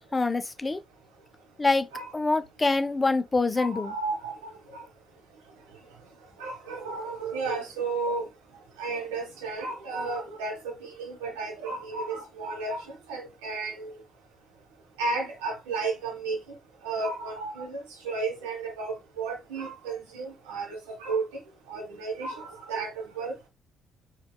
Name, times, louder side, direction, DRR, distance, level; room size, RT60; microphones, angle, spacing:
voice 1, 0.1-0.8 1.6-1.9 2.1-3.9, left 3 dB, 25° left, 0.4 m, -25 dB
voice 2, 3.6-4.4 4.7-4.8 6.4-8.3 8.8-14.0 15.0-16.6 16.8-21.2 21.7-23.5, right 3 dB, 75° right, 0.9 m, -33 dB
4.4 x 2.2 x 2.2 m
figure-of-eight pair, 40°, 0 cm